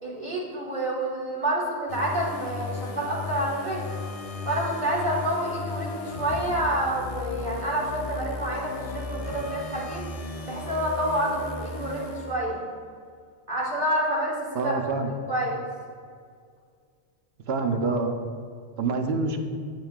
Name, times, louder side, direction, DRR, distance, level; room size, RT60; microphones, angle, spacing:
voice 1, 0.0-3.9 4.5-10.1 10.5-12.6 13.5-14.7 15.3-15.6, right 1 dB, 45° right, -4 dB, 1.9 m, -28 dB
sound 1, 1.9-12.7, left 3 dB, 40° left, 0.7 m, -35 dB
voice 2, 14.5-15.1 17.5-18.2 18.8-19.4, right 4 dB, 75° right, 5 dB, 1.0 m, -26 dB
10.5 x 7.3 x 2.4 m, 2.1 s
omnidirectional pair, 1.0 m